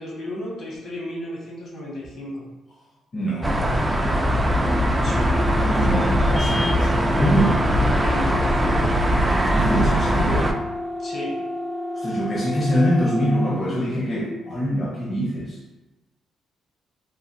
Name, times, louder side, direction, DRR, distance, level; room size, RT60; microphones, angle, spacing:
voice 1, 0.0-2.4 5.0-5.5 5.9-6.1 8.0-8.9 11.0-11.4, left 1 dB, 60° left, -4 dB, 1.2 m, -33 dB
voice 2, 3.1-3.8 5.6-7.6 9.2-10.6 11.9-15.6, equal, 35° left, -6 dB, 0.7 m, -24 dB
sound 1, 3.4-10.5, equal, 15° right, 0.3 m, -21 dB
sound 2, 4.6-13.6, left 2 dB, 90° left, 1.4 m, -31 dB
3.2 x 2.3 x 2.6 m, 1.1 s
cardioid pair, 90°, 0 cm